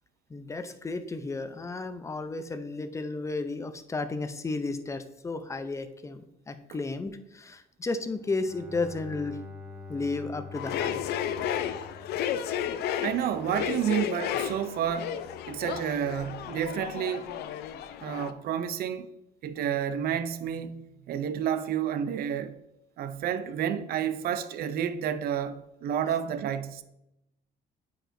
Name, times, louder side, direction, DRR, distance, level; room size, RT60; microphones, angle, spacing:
voice 1, 0.3-9.4 9.9-11.0, left 3 dB, 15° left, 0.5 m, -33 dB
Bowed string instrument, 8.2-13.1, left 3 dB, 5° right, 0.9 m, -45 dB
sound 1, 10.5-18.3, left 9 dB, 75° left, 0.5 m, -33 dB
voice 2, 13.0-15.2 15.5-17.3 18.0-19.1 19.4-20.8 21.1-22.6 23.0-26.8, right 9 dB, 65° right, 0.5 m, -30 dB
8.8 x 4.8 x 2.6 m
cardioid pair, 110°, 17 cm